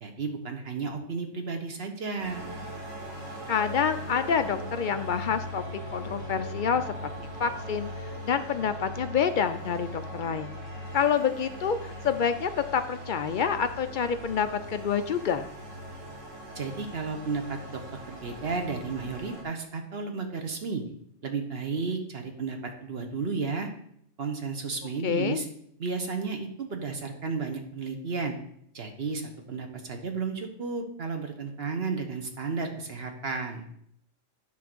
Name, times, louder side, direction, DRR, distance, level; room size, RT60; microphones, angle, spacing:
voice 1, 0.0-2.4 16.5-17.8 18.1-20.8 21.2-23.7 24.2-25.5 25.8-28.3 28.7-33.7, right 4 dB, 50° right, 4 dB, 1.3 m, -33 dB
sound 1, 2.2-19.4, equal, 70° right, 1.9 m, -40 dB
sound 2, 3.0-9.0, left 1 dB, 25° right, 1.1 m, -48 dB
voice 2, 3.5-5.6 5.9-10.5 10.9-15.5 25.0-25.4, left 7 dB, 65° left, 10 dB, 0.5 m, -28 dB
9.3 x 3.9 x 6.1 m, 0.69 s
omnidirectional pair, 1.4 m